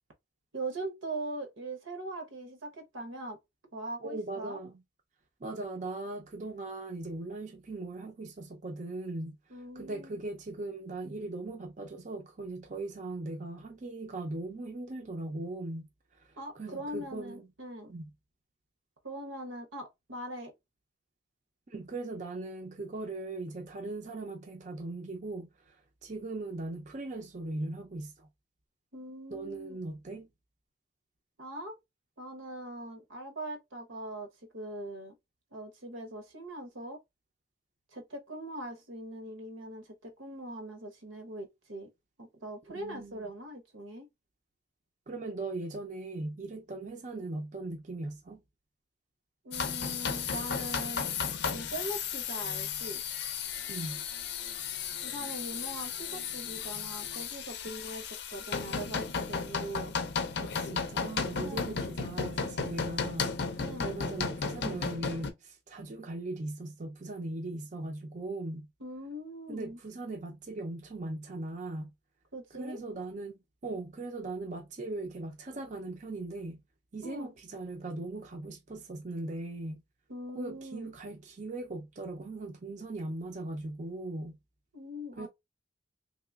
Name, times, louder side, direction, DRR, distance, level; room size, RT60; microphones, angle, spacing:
voice 1, 0.5-3.4 3.7-4.6 9.5-10.2 16.4-17.9 19.0-20.5 28.9-29.8 31.4-31.7 32.2-35.1 35.5-37.0 37.9-41.9 42.2-44.1 49.4-51.1 51.5-53.0 55.0-59.9 61.4-61.7 63.6-63.9 68.8-69.8 72.3-72.8 77.0-77.3 80.1-80.9 84.7-85.3, right 1 dB, 85° right, 0.9 m, -41 dB
voice 2, 4.0-4.8 5.4-15.9 16.1-17.5 17.9-18.1 21.7-28.3 29.3-30.3 42.7-43.2 45.1-48.4 53.7-54.0 60.4-68.7 69.5-71.9 72.5-76.6 76.9-79.8 80.3-84.4 85.2-85.3, right 2 dB, 40° right, 0.5 m, -39 dB
sound 1, 49.5-65.3, left 6 dB, 55° left, 0.5 m, -34 dB
3.1 x 3.0 x 2.3 m
head